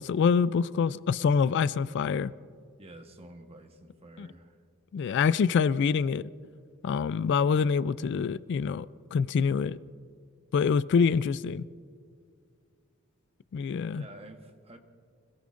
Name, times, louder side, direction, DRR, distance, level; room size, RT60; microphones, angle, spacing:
voice 1, 0.0-2.3 4.2-4.3 4.9-6.3 6.8-9.8 10.5-11.6 13.5-14.0, left 6 dB, 55° left, 0.3 m, -26 dB
voice 2, 2.8-4.6 13.9-14.8, right 1 dB, 30° right, 1.1 m, -49 dB
25.5 x 17.5 x 2.5 m
head